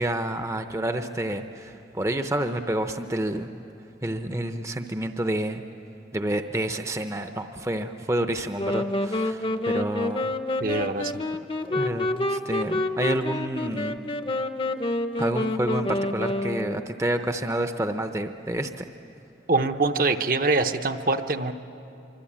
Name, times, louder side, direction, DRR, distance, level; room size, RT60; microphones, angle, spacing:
voice 1, 0.0-3.5 4.0-5.6 6.1-10.3 11.7-14.0 15.2-18.9, right 1 dB, 15° right, 7 dB, 0.7 m, -29 dB
sound 1, 8.6-17.0, left 1 dB, 30° left, 0.7 m, -28 dB
voice 2, 10.6-11.2 19.5-21.5, right 3 dB, 50° right, 7 dB, 0.8 m, -24 dB
25.0 x 24.5 x 8.7 m, 2.8 s
head